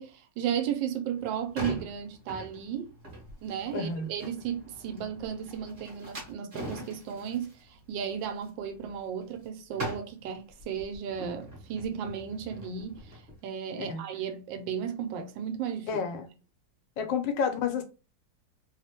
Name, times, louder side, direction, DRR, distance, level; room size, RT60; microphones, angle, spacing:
voice 1, 0.0-2.9 3.4-13.1 13.4-16.0, right 8 dB, 90° right, 1.3 m, -34 dB
sound 1, 1.1-9.5 9.7-13.4, equal, 35° right, 1.2 m, -43 dB
voice 2, 3.7-4.1 13.9-14.0 15.9-16.3 17.0-17.8, left 6 dB, 85° left, 1.3 m, -30 dB
3.2 x 2.1 x 2.8 m
omnidirectional pair, 2.0 m